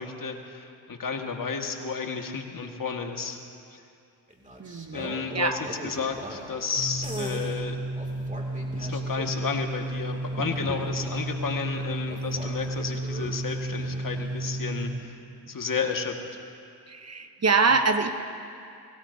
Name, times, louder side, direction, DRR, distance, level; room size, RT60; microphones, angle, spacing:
voice 1, 0.0-3.4 3.7-3.8 4.9-7.8 8.8-15.2 15.5-16.4, left 5 dB, 45° left, 3 dB, 1.9 m, -32 dB
sound 1, 4.3-6.6 7.0-7.6 7.9-9.6 10.3-11.5 12.1-14.0, right 1 dB, 15° right, 2.6 m, -40 dB
voice 2, 4.6-5.6 10.4-10.5 16.9-18.1, right 4 dB, 35° right, 7 dB, 1.0 m, -25 dB
sound 2, 6.7-15.0, right 1 dB, 60° right, 3.0 m, -32 dB
23.5 x 17.5 x 2.8 m, 2.5 s
supercardioid pair, 55°, 47 cm